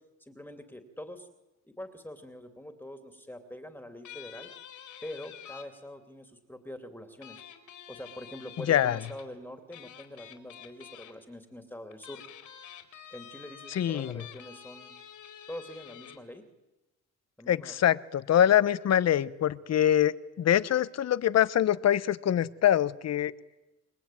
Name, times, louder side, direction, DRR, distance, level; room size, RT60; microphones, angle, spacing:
voice 1, 0.2-1.3 1.6-4.5 5.0-7.4 7.9-12.2 13.1-14.9 15.5-16.4 17.4-17.8, left 1 dB, 5° left, 6 dB, 2.8 m, -44 dB
sound 1, 4.0-5.6 7.2-9.3 9.7-11.1 11.9-16.2, left 10 dB, 80° left, 4.0 m, -48 dB
voice 2, 8.7-9.0 13.7-14.2 17.5-23.3, left 10 dB, 60° left, 16 dB, 1.1 m, -24 dB
29.0 x 22.5 x 9.2 m, 1.0 s
cardioid pair, 90°, 30 cm